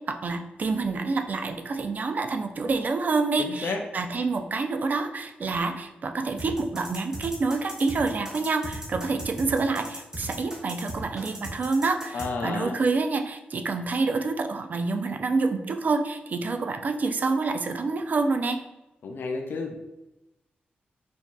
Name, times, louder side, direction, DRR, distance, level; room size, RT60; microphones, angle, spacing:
voice 1, 0.1-18.6, right 3 dB, 50° right, 6 dB, 0.4 m, -27 dB
voice 2, 3.4-3.8 12.1-12.8 19.0-19.8, left 3 dB, 70° left, 3 dB, 0.4 m, -31 dB
sound 1, 6.4-12.3, right 1 dB, 15° right, 0.9 m, -37 dB
4.5 x 2.7 x 2.3 m, 0.96 s
cardioid pair, 85°, 4 cm